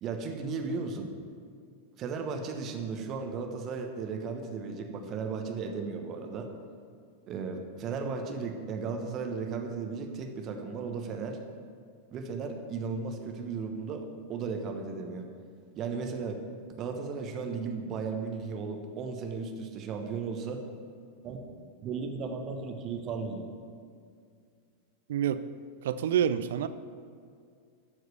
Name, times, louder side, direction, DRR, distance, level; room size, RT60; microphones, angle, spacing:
voice 1, 0.0-1.1 2.0-6.5 7.3-11.4 12.1-15.3 15.7-16.4 16.8-20.6 21.2-21.4 21.8-23.5, right 5 dB, 35° right, 4 dB, 1.1 m, -35 dB
voice 2, 25.1-25.4 25.8-26.7, right 9 dB, 60° right, 13 dB, 0.4 m, -27 dB
12.0 x 4.8 x 6.8 m, 2.2 s
figure-of-eight pair, 90°, 0 cm